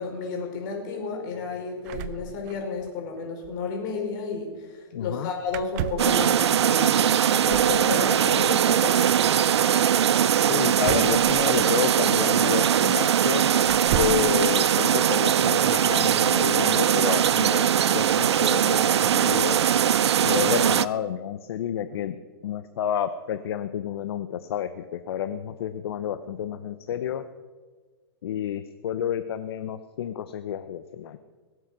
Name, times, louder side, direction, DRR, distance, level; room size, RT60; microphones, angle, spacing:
voice 1, 0.0-9.0, left 4 dB, 45° left, 1 dB, 4.5 m, -32 dB
sound 1, 1.9-2.9 3.2-3.3 3.4-3.7 5.5-6.2 7.5-7.8 10.8-12.0 12.8-12.9 13.6-14.3, right 11 dB, 40° right, 0.6 m, -33 dB
voice 2, 4.9-5.3 10.5-13.5 13.9-19.6 20.2-22.2 22.4-27.2 28.2-31.2, left 9 dB, 70° left, 11 dB, 0.7 m, -30 dB
sound 2, 6.0-20.9, right 9 dB, 90° right, 0.5 m, -21 dB
sound 3, 11.2-21.0, left 3 dB, 15° left, 2.5 m, -50 dB
21.0 x 7.9 x 6.0 m, 1.4 s
hypercardioid pair, 145°, 14 cm